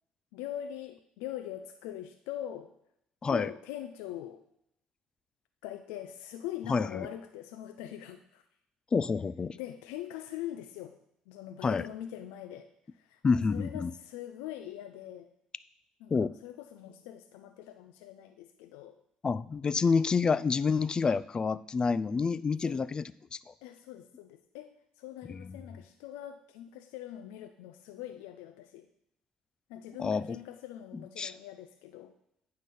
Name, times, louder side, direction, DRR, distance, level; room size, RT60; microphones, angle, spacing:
voice 1, 0.3-2.7 3.3-4.4 5.6-8.4 9.5-11.0 11.3-12.7 12.9-15.3 16.0-19.0 22.6-22.9 23.6-28.9 29.7-32.1, left 12 dB, 90° left, 8 dB, 0.5 m, -42 dB
voice 2, 6.7-7.1 8.9-9.6 11.6-11.9 13.2-13.9 16.1-16.3 19.2-23.5 25.3-25.5 30.0-30.2 31.2-31.3, left 5 dB, 30° left, 18 dB, 0.3 m, -28 dB
9.1 x 4.0 x 6.9 m, 0.75 s
supercardioid pair, 80°, 3 cm